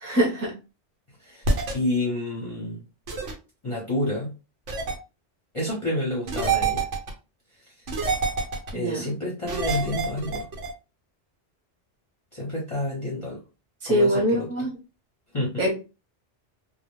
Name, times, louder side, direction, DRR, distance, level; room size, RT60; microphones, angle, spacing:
voice 1, 0.0-0.5 8.7-9.1 13.8-14.7 15.6-15.7, equal, 15° right, -1 dB, 0.7 m, -23 dB
voice 2, 1.2-2.8 3.6-4.3 5.5-6.9 7.6-7.7 8.7-10.5 12.3-13.4 13.9-14.5 15.3-15.6, left 1 dB, 30° left, -5 dB, 0.7 m, -29 dB
sound 1, 1.4-1.7 3.1-3.3 4.7-5.0 6.3-7.1 7.9-8.7 9.5-10.7, right 4 dB, 85° right, 1.1 m, -26 dB
2.3 x 2.1 x 3.0 m, 0.30 s
omnidirectional pair, 1.2 m